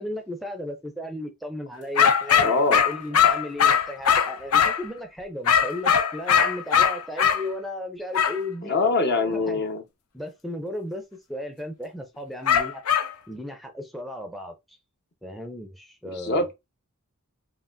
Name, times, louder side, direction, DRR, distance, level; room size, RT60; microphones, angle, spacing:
voice 1, 0.0-2.5 2.8-8.9 9.2-9.6 10.1-12.8 13.3-14.8 15.2-16.5, left 1 dB, ahead, 0.5 m, -35 dB
sound 1, 2.0-4.9 5.5-7.4 8.1-8.4 12.5-13.1, left 8 dB, 85° left, 0.6 m, -20 dB
voice 2, 2.4-2.8 8.6-9.8 16.1-16.5, left 3 dB, 50° left, 1.0 m, -23 dB
5.7 x 2.4 x 2.6 m
head